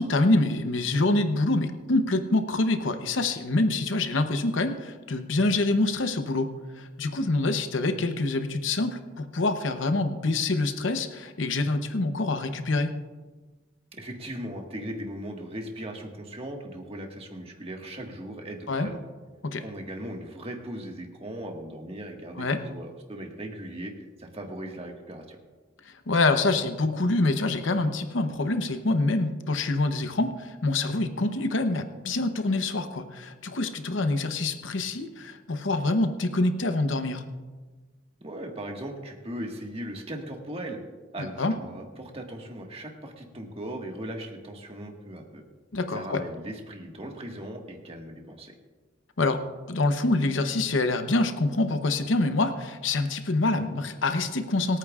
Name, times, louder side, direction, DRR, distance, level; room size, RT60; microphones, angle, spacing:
voice 1, 0.0-6.5 6.8-12.9 18.7-18.9 19.4-19.6 22.4-22.6 26.1-37.2 41.2-41.6 45.7-46.2 49.2-49.4 49.7-54.8, left 2 dB, 70° left, 8 dB, 0.8 m, -26 dB
voice 2, 13.9-19.0 19.6-23.9 24.2-25.4 38.2-40.8 41.1-45.4 45.9-48.5, right 1 dB, 30° right, 2 dB, 1.6 m, -38 dB
26.0 x 9.0 x 2.4 m, 1.3 s
head